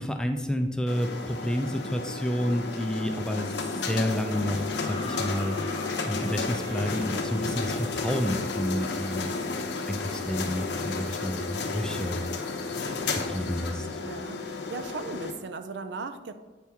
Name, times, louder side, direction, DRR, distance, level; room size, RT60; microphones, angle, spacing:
voice 1, 0.0-5.6 6.0-9.3 9.9-12.3 13.3-13.9, equal, 5° left, 4 dB, 0.4 m, -30 dB
sound 1, 0.9-15.3, left 3 dB, 70° left, 0.8 m, -32 dB
sound 2, 4.7-7.7 9.0-9.1, left 4 dB, 20° left, 0.9 m, -42 dB
voice 2, 14.0-16.3, right 4 dB, 75° right, 10 dB, 0.5 m, -37 dB
8.2 x 4.4 x 3.5 m, 1.3 s
head